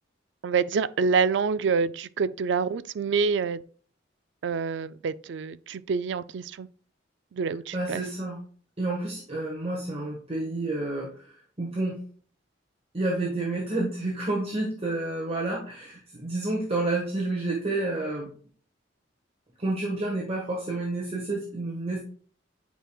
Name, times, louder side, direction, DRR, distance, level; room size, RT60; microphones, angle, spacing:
voice 1, 0.4-3.6 4.4-6.7 7.3-8.0, right 5 dB, 65° right, 0.4 m, -27 dB
voice 2, 7.7-8.4 8.8-12.0 12.9-18.3 19.6-22.0, right 2 dB, 30° right, 1.4 m, -30 dB
9.2 x 5.0 x 2.3 m
head